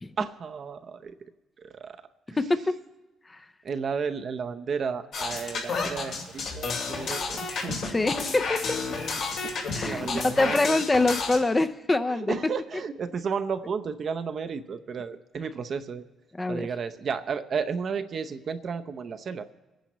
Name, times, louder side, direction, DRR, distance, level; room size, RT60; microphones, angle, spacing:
voice 1, 0.2-1.1 1.6-2.0 3.6-7.9 9.4-10.8 12.1-16.0 16.5-19.5, right 6 dB, 55° right, 9 dB, 0.7 m, -33 dB
voice 2, 2.3-2.8 3.3-3.4 7.9-8.8 9.7-12.3 16.4-16.7, left 2 dB, 20° left, 10 dB, 0.6 m, -25 dB
sound 1, 5.1-11.4, left 4 dB, 75° left, 2.6 m, -31 dB
24.0 x 10.0 x 3.1 m, 1.1 s
cardioid pair, 90°, 0 cm